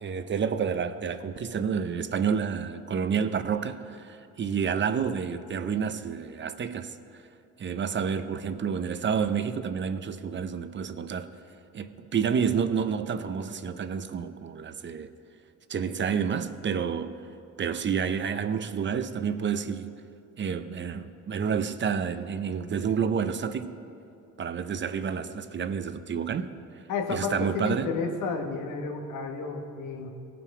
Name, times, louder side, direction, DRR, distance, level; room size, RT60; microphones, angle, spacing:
voice 1, 0.0-7.0 7.6-11.3 11.7-15.1 15.7-17.2 17.6-19.9 20.4-23.8 24.4-26.5 27.1-27.9, right 6 dB, 40° right, 0.6 m, -29 dB
voice 2, 26.9-30.1, left 4 dB, 90° left, 1.2 m, -31 dB
17.0 x 5.9 x 4.8 m
cardioid pair, 90°, 30 cm